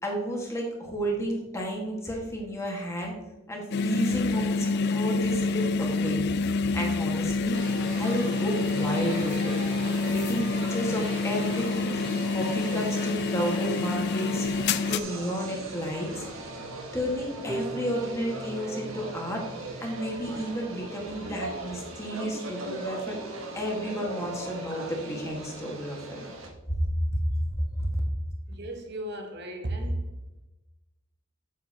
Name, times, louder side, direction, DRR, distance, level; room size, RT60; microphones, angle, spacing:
voice 1, 0.0-3.2 3.5-6.2 6.7-7.6 7.9-9.5 10.1-14.5 14.9-16.3 16.9-19.4 19.8-23.2 23.5-26.2 26.7-26.9 27.5-27.9, equal, 15° left, -2 dB, 1.7 m, -32 dB
sound 1, 3.7-15.0, left 4 dB, 55° left, 0.3 m, -27 dB
sound 2, 7.5-26.5, right 2 dB, 80° right, 1.2 m, -39 dB
Harp, 17.5-23.5, right 2 dB, 25° right, 0.6 m, -43 dB
voice 2, 28.5-30.2, right 1 dB, 55° right, 4 dB, 0.9 m, -34 dB
8.1 x 7.0 x 2.9 m, 1.0 s
head